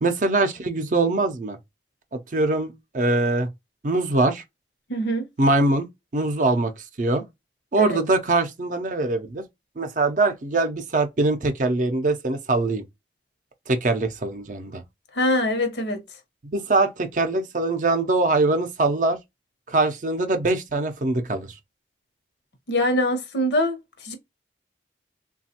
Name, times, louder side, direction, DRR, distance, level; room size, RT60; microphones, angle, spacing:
voice 1, 0.0-1.6 2.1-3.5 3.8-4.4 5.4-5.9 6.1-6.7 7.0-7.2 7.7-9.4 9.8-12.8 13.7-14.8 16.5-19.2 19.7-21.5, right 2 dB, 45° right, 0.5 m, -22 dB
voice 2, 4.9-5.3 7.8-8.0 15.1-16.0 22.7-24.2, left 1 dB, 75° left, 0.8 m, -23 dB
3.3 x 2.3 x 2.7 m
head